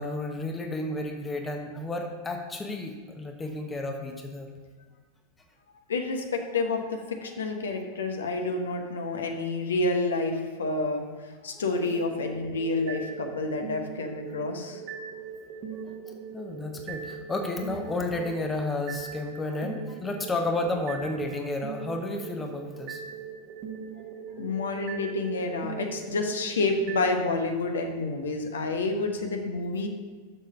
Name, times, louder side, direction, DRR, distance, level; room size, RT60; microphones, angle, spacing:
voice 1, 0.0-4.5 15.7-15.9 16.3-23.0 24.0-24.1, left 2 dB, 15° left, 3 dB, 1.0 m, -32 dB
voice 2, 5.9-11.0 11.4-14.8 24.4-29.9, left 3 dB, 65° left, 4 dB, 1.1 m, -29 dB
sound 1, 11.8-27.2, right 6 dB, 40° right, 1.5 m, -40 dB
6.7 x 6.6 x 5.5 m, 1.5 s
figure-of-eight pair, 90°, 0 cm